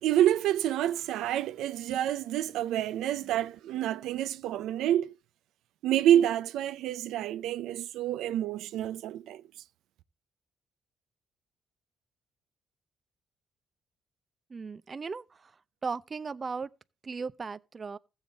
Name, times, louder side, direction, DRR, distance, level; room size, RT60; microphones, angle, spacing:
voice 1, 0.0-5.1 5.8-9.4, right 11 dB, 90° right, 0.6 m, -28 dB
voice 2, 14.5-15.2 15.8-16.7 17.0-18.0, right 5 dB, 35° right, 0.5 m, -36 dB
15.0 x 7.3 x 4.0 m
cardioid pair, 90°, 0 cm